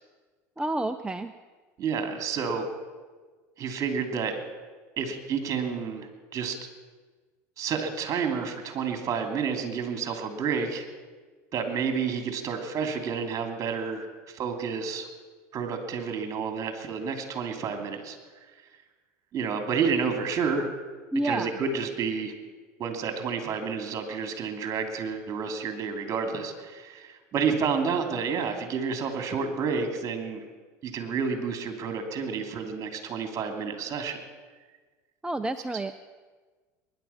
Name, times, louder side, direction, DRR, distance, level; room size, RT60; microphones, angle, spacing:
voice 1, 0.6-1.3 21.1-21.5 35.2-36.0, right 1 dB, 10° right, 8 dB, 0.6 m, -29 dB
voice 2, 1.8-2.7 3.6-4.4 5.0-6.6 7.6-10.9 11.5-15.1 15.5-18.2 19.3-20.7 21.2-22.3 22.8-30.4 30.8-34.2, right 6 dB, 45° right, 6 dB, 2.8 m, -30 dB
21.5 x 10.5 x 5.8 m, 1.4 s
supercardioid pair, 90°, 8 cm